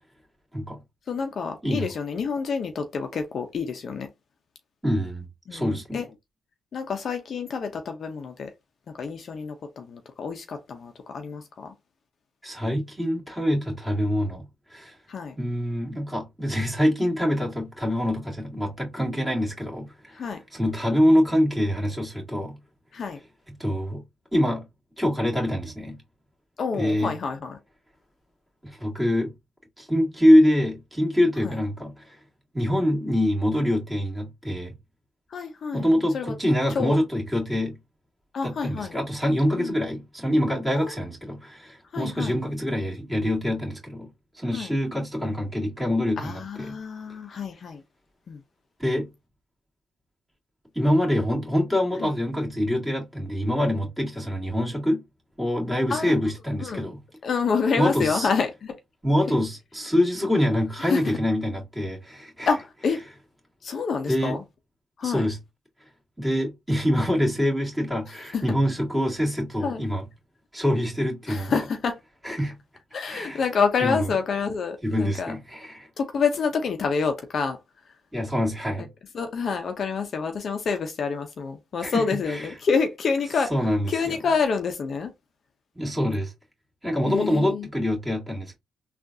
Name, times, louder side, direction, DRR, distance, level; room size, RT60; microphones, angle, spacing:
voice 1, 1.1-4.1 5.5-6.0 6.7-8.5 9.0-11.7 15.1-15.4 20.1-20.4 22.9-23.2 26.6-27.6 31.4-31.5 35.3-35.9 36.1-36.3 36.7-37.0 38.3-38.9 39.6-39.8 40.8-40.9 41.9-42.3 44.5-44.7 46.2-47.8 48.3-48.4 52.0-52.1 55.9-56.1 56.6-56.8 57.2-58.7 59.3-59.4 60.9-61.2 62.4-63.0 63.6-64.4 65.0-65.2 68.3-68.4 69.6-69.8 71.3-72.0 72.9-75.3 76.0-77.6 78.8-78.9 79.1-83.5 83.9-85.1 87.1-87.7, left 5 dB, 55° left, 0.7 m, -28 dB
voice 2, 4.8-6.1 12.4-14.4 14.7-15.0 15.4-22.6 23.5-24.0 24.3-24.6 25.0-26.0 26.7-27.2 28.6-29.3 29.8-32.2 32.5-34.7 35.7-37.8 38.4-44.1 44.3-46.8 48.8-49.1 50.7-55.0 55.4-57.0 57.8-58.3 59.0-62.5 64.1-64.4 65.0-65.4 66.2-70.1 70.5-71.6 72.2-72.5 73.1-73.4 73.8-74.1 74.8-75.9 78.1-78.9 81.8-82.5 83.4-84.2 85.8-86.3 86.8-88.6, equal, 5° right, 2.0 m, -25 dB
3.6 x 2.5 x 2.6 m
cardioid pair, 90°, 0 cm